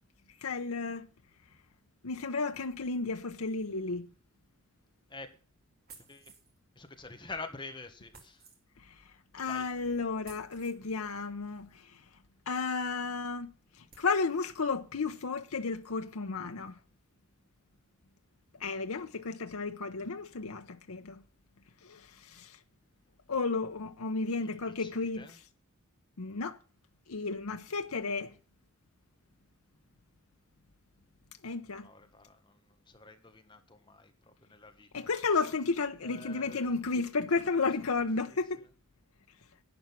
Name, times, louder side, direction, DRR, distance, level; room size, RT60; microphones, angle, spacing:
voice 1, 0.4-1.1 2.0-4.1 8.8-9.0 9.3-12.0 12.5-16.7 18.6-21.2 21.8-22.6 23.3-25.2 26.2-26.6 27.1-28.3 31.4-31.9 34.9-38.6, left 4 dB, 90° left, 0.8 m, -33 dB
sound 1, 5.9-6.6 8.1-8.6 10.2-10.8 12.7-12.8 13.3-13.4 13.9-14.1, right 5 dB, 45° right, 3.1 m, -55 dB
voice 2, 6.0-6.3 6.7-8.5 9.4-9.7 24.3-25.4 31.7-35.1 36.0-36.8 37.8-38.7, left 3 dB, 20° left, 1.5 m, -48 dB
11.5 x 9.1 x 5.8 m
head